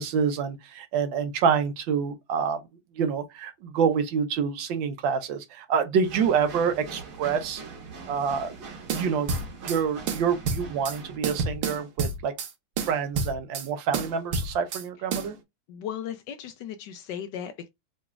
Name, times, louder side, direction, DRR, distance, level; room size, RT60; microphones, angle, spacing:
voice 1, 0.0-2.6 3.0-7.6 8.1-8.6 8.9-9.3 9.6-12.3 12.8-15.3, right 6 dB, 70° right, 1.3 m, -27 dB
sound 1, 6.0-11.2, right 4 dB, 50° right, 1.2 m, -42 dB
sound 2, 8.9-9.8 10.1-11.0 11.2-12.5 12.8-13.7 13.9-14.8 15.1-15.3, right 4 dB, 85° right, 1.7 m, -29 dB
voice 2, 15.7-17.7, left 9 dB, 75° left, 1.0 m, -36 dB
3.8 x 3.1 x 2.3 m
omnidirectional pair, 2.4 m